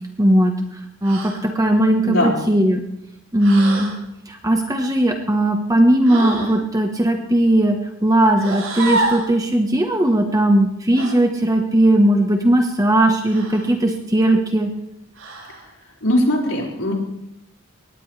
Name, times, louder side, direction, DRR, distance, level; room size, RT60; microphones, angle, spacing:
voice 1, 0.2-2.8 3.3-3.9 4.3-14.7, right 1 dB, 15° right, 3 dB, 1.2 m, -18 dB
sound 1, 1.0-1.4 3.4-4.0 6.0-6.6 8.4-9.3 11.0-11.2 13.2-13.7 15.1-15.6, right 2 dB, 90° right, 7.0 m, -27 dB
voice 2, 16.0-16.9, left 1 dB, 80° left, -2 dB, 5.1 m, -19 dB
22.5 x 18.5 x 3.3 m, 0.82 s
head